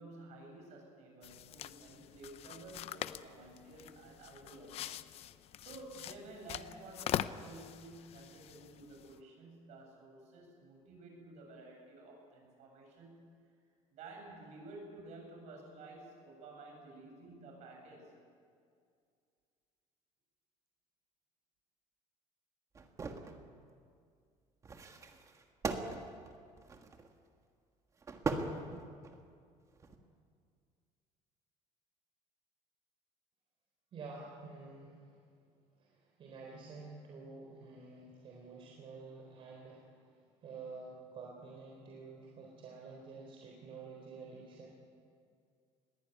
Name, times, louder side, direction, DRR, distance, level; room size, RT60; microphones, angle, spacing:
voice 1, 0.0-5.0 5.6-13.3 13.9-18.1, right 2 dB, 60° right, 1 dB, 7.6 m, -52 dB
sound 1, 1.2-9.2, left 11 dB, 50° left, 0.7 m, -43 dB
sound 2, 22.8-23.4 24.6-27.1 28.0-29.2 29.7-30.0, right 3 dB, 25° right, 1.6 m, -39 dB
voice 2, 33.9-35.2 35.8-44.7, right 4 dB, 40° right, -1 dB, 3.9 m, -50 dB
21.0 x 16.5 x 9.5 m, 2.2 s
cardioid pair, 155°, 13 cm